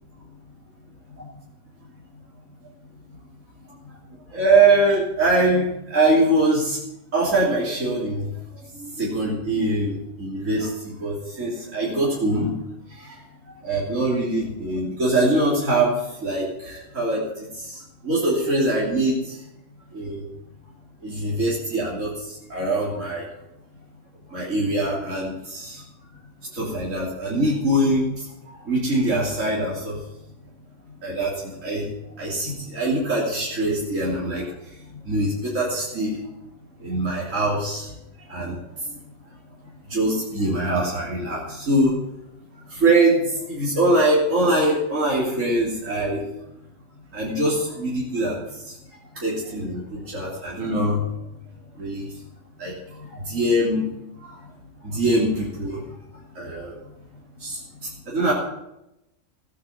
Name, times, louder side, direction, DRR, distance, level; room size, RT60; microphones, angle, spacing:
voice 1, 4.3-5.7 5.9-6.8 7.1-8.2 9.0-10.7 11.0-12.5 13.6-15.9 16.2-17.2 18.0-19.2 19.9-20.2 21.0-22.1 22.5-23.2 24.3-25.8 26.5-28.1 28.7-29.9 31.0-31.4 31.6-31.9 32.2-34.4 35.1-36.1 36.8-37.9 38.3-38.6 39.9-41.9 42.8-43.2 43.5-46.2 47.1-48.4 49.2-51.0 51.8-52.1 52.6-52.7 53.3-53.9 54.9-55.8 56.4-56.7 57.4-57.6 58.1-58.3, right 2 dB, 75° right, -6 dB, 3.7 m, -22 dB
16.0 x 9.5 x 7.3 m, 0.88 s
omnidirectional pair, 1.4 m